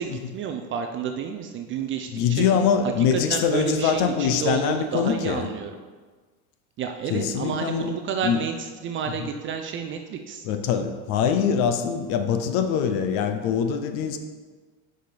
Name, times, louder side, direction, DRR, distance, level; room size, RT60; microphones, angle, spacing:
voice 1, 0.0-2.5 3.1-5.7 6.8-10.5, right 7 dB, 30° right, 5 dB, 0.4 m, -30 dB
voice 2, 2.1-5.5 7.1-7.9 8.2-8.4 9.2-9.3 10.4-14.2, left 7 dB, 50° left, 8 dB, 0.8 m, -23 dB
6.5 x 5.0 x 4.9 m, 1.4 s
supercardioid pair, 115°, 45 cm